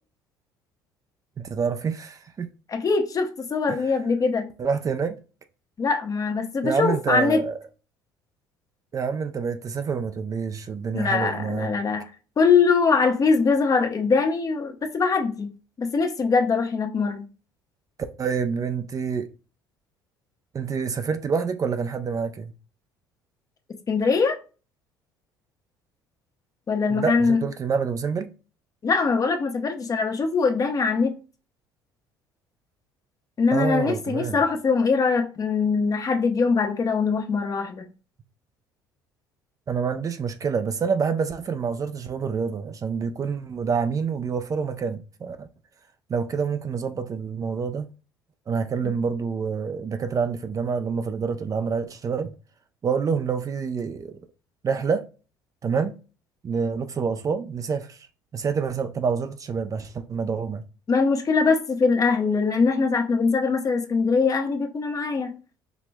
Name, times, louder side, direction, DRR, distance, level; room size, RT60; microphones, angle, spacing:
voice 1, 1.4-2.5 3.7-3.8 4.6-5.2 6.6-7.6 8.9-11.7 18.2-19.3 20.5-22.5 26.9-28.3 33.5-34.4 39.7-45.5 46.1-47.9 48.5-52.3 52.8-54.2 54.6-55.0 55.6-56.0 56.4-58.1 58.3-60.6, right 5 dB, 35° right, 0.5 m, -27 dB
voice 2, 2.7-4.5 5.8-7.4 10.9-12.0 12.4-15.5 15.8-17.3 23.9-24.4 26.7-27.4 28.8-31.1 33.4-37.9 60.9-65.4, left 4 dB, 35° left, 0.8 m, -22 dB
4.8 x 2.9 x 2.2 m
hypercardioid pair, 60°, 10 cm